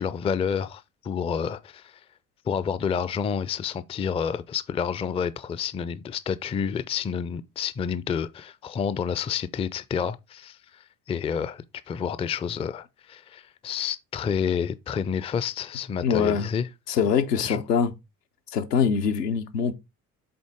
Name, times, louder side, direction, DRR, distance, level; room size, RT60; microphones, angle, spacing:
voice 1, 0.0-2.0 2.5-16.7 17.4-17.6, left 7 dB, 15° left, 0.4 m, -29 dB
voice 2, 16.0-16.5 16.9-17.9 18.5-19.8, left 6 dB, 80° left, 0.9 m, -23 dB
7.8 x 3.9 x 3.5 m
figure-of-eight pair, 55°, 48 cm